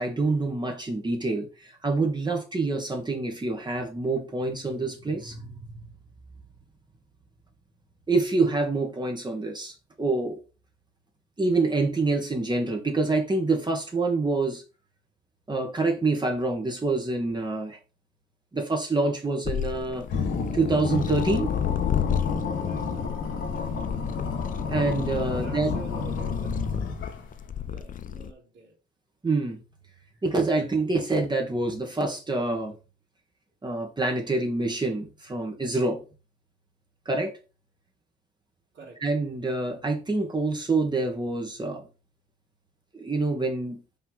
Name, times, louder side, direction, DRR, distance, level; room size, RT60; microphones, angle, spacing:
voice 1, 0.0-5.4 8.1-10.4 11.4-14.6 15.5-17.8 18.5-20.1 20.5-21.5 24.7-25.7 29.2-29.6 30.2-32.7 33.6-36.0 37.0-37.3 39.0-41.9 42.9-43.8, right 3 dB, 20° right, 1.6 m, -26 dB
sound 1, 19.4-28.3, left 9 dB, 45° left, 0.6 m, -32 dB
sound 2, 20.1-27.3, left 5 dB, 70° left, 1.9 m, -30 dB
voice 2, 25.2-26.6 27.6-28.8 38.7-39.0, right 3 dB, 60° right, 2.5 m, -45 dB
5.6 x 3.4 x 5.6 m
cardioid pair, 90°, 20 cm